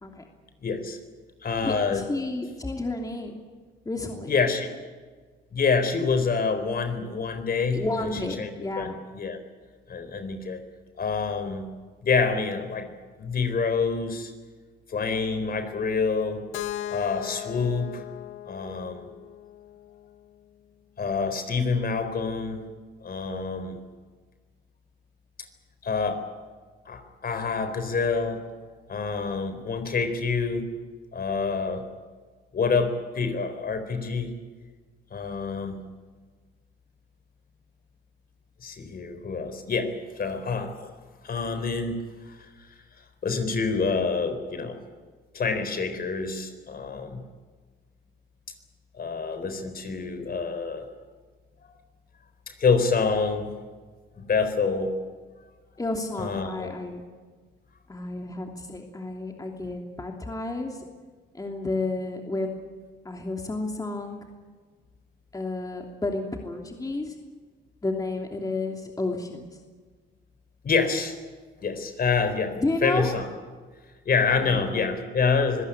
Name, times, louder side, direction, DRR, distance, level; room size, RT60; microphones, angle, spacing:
voice 1, 0.6-1.0 1.4-2.0 4.3-4.7 5.5-8.1 8.4-8.5 8.8-9.4 9.9-10.6 11.0-11.7 12.0-12.9 13.2-14.3 14.9-16.4 16.9-18.0 18.5-19.1 21.0-22.6 23.0-23.8 25.8-26.2 26.9-28.4 28.9-30.7 31.1-31.9 32.5-34.3 35.1-35.8 38.6-40.9 41.2-42.7 43.2-44.8 45.3-47.2 48.9-50.9 52.5-53.5 54.2-55.0 56.2-56.7 70.6-71.2 71.6-73.3 74.1-75.6, left 5 dB, 50° left, 8 dB, 4.0 m, -27 dB
voice 2, 1.6-3.3 3.8-4.3 7.7-9.0 55.8-57.0 57.9-60.8 61.3-62.5 63.0-64.2 65.3-67.1 67.8-69.5 72.6-73.1 74.4-75.0, left 2 dB, 20° left, 2 dB, 2.9 m, -31 dB
Keyboard (musical), 16.5-20.4, left 12 dB, 90° left, 0.9 m, -38 dB
25.5 x 16.5 x 9.9 m, 1.4 s
cardioid pair, 90°, 20 cm